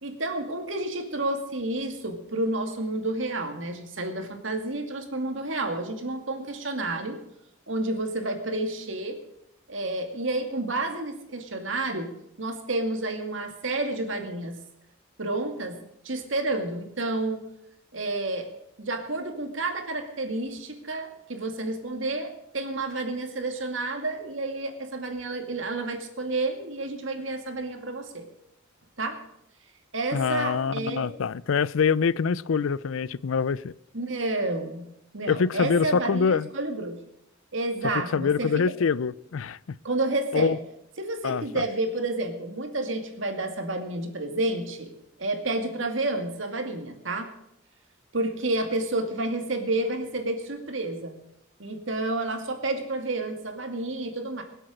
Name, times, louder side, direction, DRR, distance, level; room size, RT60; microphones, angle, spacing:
voice 1, 0.0-7.2 7.7-9.2 9.7-12.1 12.4-14.6 15.2-15.8 16.0-17.5 17.9-18.5 18.8-28.3 29.0-29.2 29.9-31.1 33.9-34.9 35.1-37.0 37.5-38.5 39.8-40.6 41.0-44.9 45.2-47.3 48.1-51.2 51.6-54.4, right 2 dB, 70° right, 2.3 m, -30 dB
voice 2, 30.1-33.7 35.3-36.5 38.1-39.6 40.3-40.6 41.2-41.6, left 6 dB, 85° left, 0.5 m, -25 dB
21.5 x 8.0 x 6.5 m
head